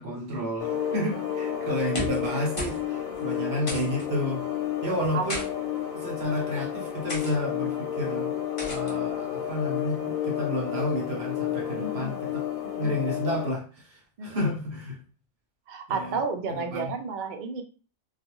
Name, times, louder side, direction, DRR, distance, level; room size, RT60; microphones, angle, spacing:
voice 1, 0.0-4.4 4.8-5.4 5.9-12.5 12.8-15.0 15.9-16.2 16.5-16.9, left 1 dB, 55° right, 0 dB, 0.9 m, -31 dB
sound 1, 0.6-13.5, left 10 dB, 85° left, 1.2 m, -31 dB
sound 2, 1.9-2.3 2.6-2.8 3.1-3.2 3.7-4.1 5.0-5.5 6.2-6.5 7.1-7.3 8.6-8.9, equal, 30° left, 0.7 m, -34 dB
voice 2, 11.8-12.2 12.6-13.0 14.2-14.5 15.7-17.6, right 4 dB, 90° right, 5 dB, 0.4 m, -32 dB
2.4 x 2.3 x 2.9 m, 0.38 s
omnidirectional pair, 1.4 m